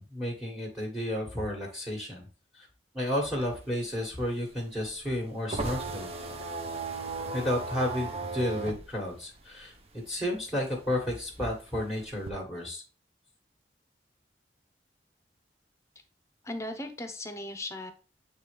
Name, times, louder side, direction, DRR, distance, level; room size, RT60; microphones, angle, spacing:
voice 1, 0.0-2.3 2.5-2.7 2.9-6.1 7.3-12.8, left 1 dB, ahead, -1 dB, 1.5 m, -32 dB
sound 1, 3.1-10.2 10.5-12.3, right 3 dB, 35° right, 0.8 m, -37 dB
voice 2, 16.4-17.9, left 1 dB, 15° left, 7 dB, 0.8 m, -37 dB
8.6 x 3.4 x 3.3 m, 0.34 s
head